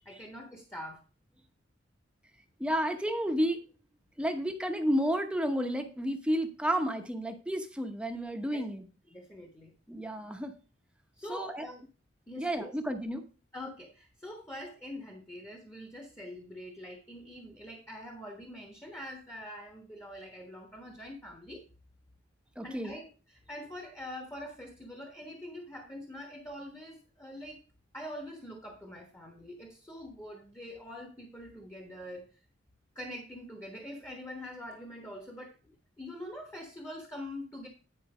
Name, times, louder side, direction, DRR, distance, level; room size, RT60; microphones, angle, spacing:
voice 1, 0.0-1.0 8.5-8.7 9.1-9.7 11.2-11.9 12.3-12.8 13.5-21.6 22.6-27.6 27.9-32.4 32.9-37.7, left 1 dB, 15° left, 3 dB, 1.2 m, -44 dB
voice 2, 2.6-3.6 4.2-8.9 9.9-10.5 11.3-11.7 12.4-13.2 22.6-23.0, equal, 5° right, 5 dB, 0.9 m, -31 dB
10.0 x 4.7 x 4.9 m, 0.35 s
head